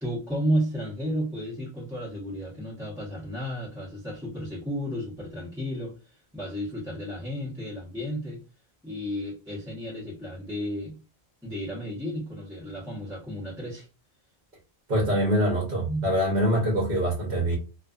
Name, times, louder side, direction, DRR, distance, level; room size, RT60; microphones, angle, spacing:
voice 1, 0.0-8.4 8.8-10.9 11.4-13.9 15.8-16.1, equal, 5° right, 0.9 m, -32 dB
voice 2, 14.9-17.6, equal, 50° right, 1.0 m, -24 dB
2.4 x 2.4 x 2.3 m
omnidirectional pair, 1.1 m